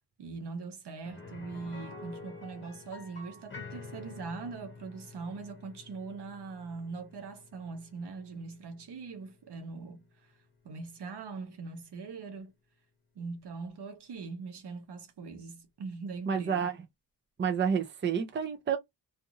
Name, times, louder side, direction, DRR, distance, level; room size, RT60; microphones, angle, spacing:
voice 1, 0.2-10.1 10.6-12.5 13.2-16.7, right 4 dB, 75° right, 0.9 m, -41 dB
sound 1, 1.0-10.8 11.1-11.2 13.7-13.8, left 4 dB, 30° left, 1.1 m, -49 dB
voice 2, 16.3-16.8 17.4-18.8, right 7 dB, 30° right, 0.5 m, -29 dB
2.5 x 2.5 x 2.8 m
wide cardioid pair, 180°, 40 cm